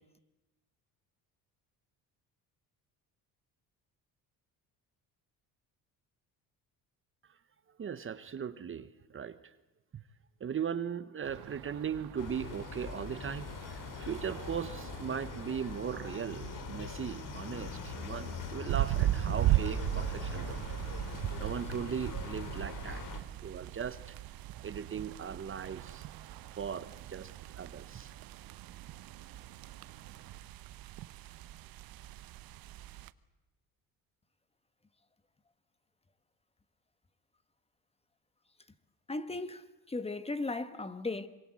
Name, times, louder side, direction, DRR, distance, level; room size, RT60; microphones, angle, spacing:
voice 1, 7.8-9.4 9.9-10.0 10.4-20.6 21.4-24.1 24.6-26.0 26.5-28.1, right 7 dB, 35° right, 1.0 m, -38 dB
sound 1, 11.2-30.4, right 12 dB, 85° right, 1.6 m, -51 dB
sound 2, 12.2-23.2, left 6 dB, 55° left, 2.6 m, -42 dB
sound 3, 18.7-33.1, right 14 dB, 65° right, 1.0 m, -37 dB
voice 2, 39.1-41.3, left 3 dB, 15° left, 1.4 m, -36 dB
26.0 x 23.5 x 7.6 m
cardioid pair, 105°, 38 cm